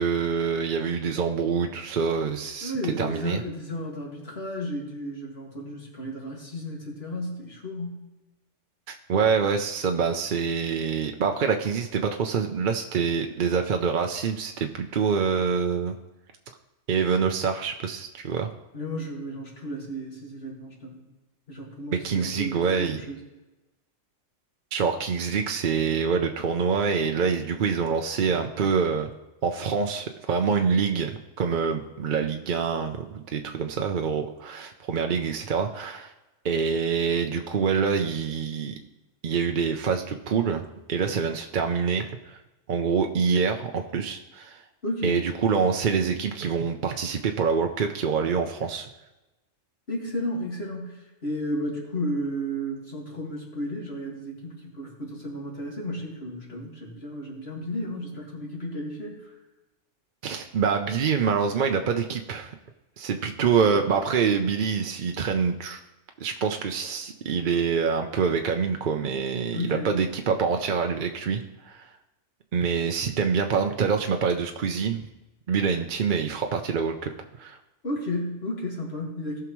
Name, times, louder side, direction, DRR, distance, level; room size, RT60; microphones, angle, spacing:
voice 1, 0.0-3.4 8.9-15.9 16.9-18.5 22.0-23.0 24.7-29.1 29.4-36.1 36.4-38.7 39.2-40.6 40.9-42.4 42.7-44.6 45.0-48.9 60.2-62.5 63.0-65.8 66.2-71.9 72.5-75.0 75.5-77.1 77.4-77.6, right 6 dB, 50° right, 4 dB, 0.6 m, -26 dB
voice 2, 2.6-8.0 18.7-21.0 21.5-23.2 44.8-45.2 49.9-51.0 51.2-59.3 69.5-69.9 77.8-79.4, equal, 50° left, -2 dB, 2.4 m, -33 dB
18.0 x 5.9 x 3.1 m, 1.1 s
omnidirectional pair, 1.3 m